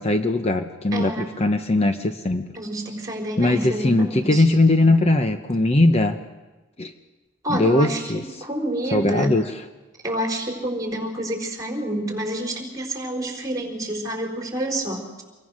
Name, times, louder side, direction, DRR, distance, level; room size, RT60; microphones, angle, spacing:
voice 1, 0.0-2.5 3.4-6.2 6.8-6.9 7.5-8.3 8.9-9.5, left 2 dB, 30° left, 7 dB, 0.8 m, -20 dB
voice 2, 0.9-1.3 2.5-4.4 7.4-9.4 10.0-15.2, right 1 dB, 15° right, 1 dB, 4.5 m, -28 dB
27.0 x 22.0 x 6.4 m, 1.2 s
head